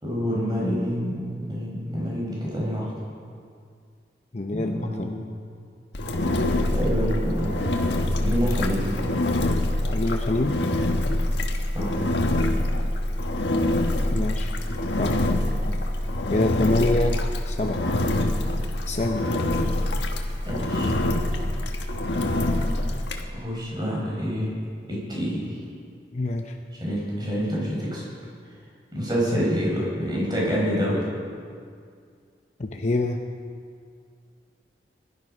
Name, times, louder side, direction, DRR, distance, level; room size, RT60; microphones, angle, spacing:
voice 1, 0.0-2.9 4.5-5.2 6.7-7.5 8.2-8.8 11.7-11.9 20.4-20.9 22.1-22.2 23.3-24.5 24.9-25.6 26.8-28.0 28.9-31.0, equal, 25° right, -4 dB, 5.1 m, -27 dB
voice 2, 4.3-5.2 9.9-10.6 14.0-14.5 15.0-15.2 16.3-17.9 18.8-19.2 26.1-26.6 32.6-33.2, left 2 dB, 40° left, 3 dB, 0.7 m, -26 dB
Engine, 5.9-23.2, left 1 dB, 85° left, 1.4 m, -25 dB
21.0 x 12.5 x 5.4 m, 2.2 s
head